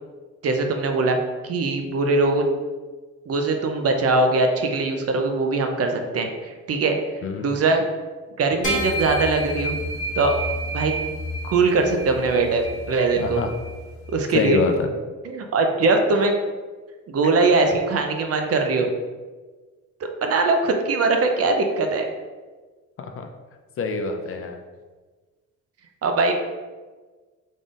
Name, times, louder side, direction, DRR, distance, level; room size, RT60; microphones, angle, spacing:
voice 1, 0.4-1.2 1.4-2.5 3.3-7.0 7.4-7.8 8.4-9.8 10.2-10.3 10.7-10.9 11.4-13.4 14.1-14.6 15.3-16.4 17.1-18.9 20.2-22.0 26.0-26.3, right 3 dB, 50° right, 4 dB, 0.6 m, -21 dB
sound 1, 8.6-14.3, equal, 25° left, 1.4 m, -30 dB
voice 2, 13.2-13.5 14.3-14.9 23.0-23.3 23.8-24.6, left 4 dB, 45° left, 5 dB, 0.5 m, -25 dB
3.8 x 3.6 x 2.5 m, 1.3 s
cardioid pair, 90°, 30 cm